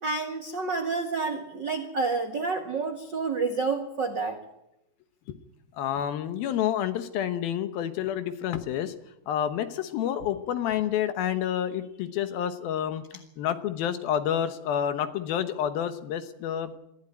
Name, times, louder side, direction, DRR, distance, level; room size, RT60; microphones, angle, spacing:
voice 1, 0.0-4.4, right 4 dB, 60° right, 5 dB, 1.1 m, -29 dB
voice 2, 5.8-8.9 9.3-13.0 13.4-16.7, left 10 dB, 70° left, 10 dB, 2.7 m, -29 dB
22.5 x 15.0 x 9.9 m, 0.87 s
omnidirectional pair, 4.8 m